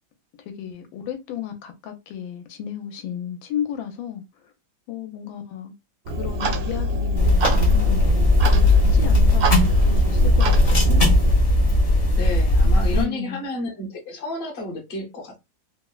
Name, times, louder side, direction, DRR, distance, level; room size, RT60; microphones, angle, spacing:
voice 1, 0.5-4.2 4.9-5.7 6.2-11.2 12.6-13.4, left 9 dB, 85° left, 1.4 m, -33 dB
Clock, 6.1-11.4, left 1 dB, 80° right, 0.7 m, -24 dB
sound 1, 7.2-13.0, left 1 dB, 60° left, 0.3 m, -18 dB
voice 2, 12.2-15.4, left 1 dB, 45° left, 0.9 m, -31 dB
3.4 x 2.0 x 2.2 m
omnidirectional pair, 2.1 m